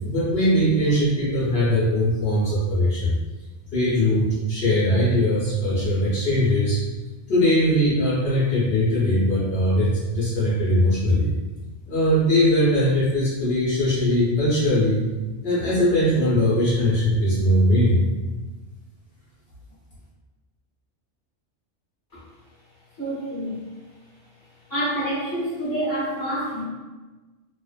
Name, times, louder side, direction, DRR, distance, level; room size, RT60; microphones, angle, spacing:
voice 1, 0.0-3.1 3.7-6.8 7.3-11.3 11.9-15.0 15.4-18.0, left 1 dB, 60° left, -10 dB, 1.0 m, -20 dB
voice 2, 23.0-23.6 24.7-26.6, right 1 dB, 20° left, -9 dB, 0.9 m, -27 dB
2.5 x 2.1 x 2.3 m, 1.2 s
omnidirectional pair, 1.2 m